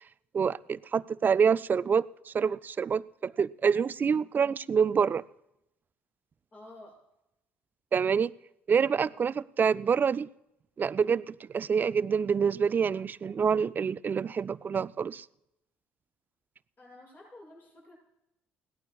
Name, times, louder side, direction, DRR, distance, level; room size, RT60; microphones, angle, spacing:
voice 1, 0.3-5.2 7.9-8.3 8.7-10.3 10.8-15.2, right 6 dB, 35° right, 0.4 m, -27 dB
voice 2, 6.5-7.0 9.1-9.3 16.8-18.0, left 1 dB, 35° left, 7.0 m, -51 dB
21.0 x 17.0 x 2.4 m
hypercardioid pair, 60°, 5 cm